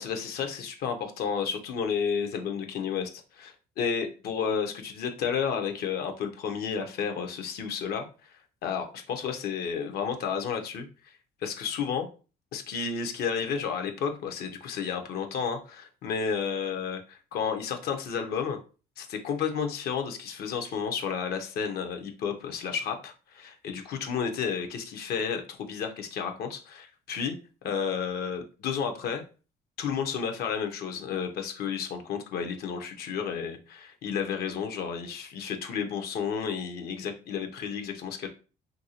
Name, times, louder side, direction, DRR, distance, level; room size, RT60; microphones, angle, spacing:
voice 1, 0.0-8.3 8.6-11.1 11.4-12.1 12.5-18.6 19.0-27.3 27.6-29.2 29.8-38.3, left 6 dB, 65° left, 5 dB, 0.6 m, -32 dB
2.7 x 2.6 x 2.8 m, 0.35 s
cardioid pair, 110°, 17 cm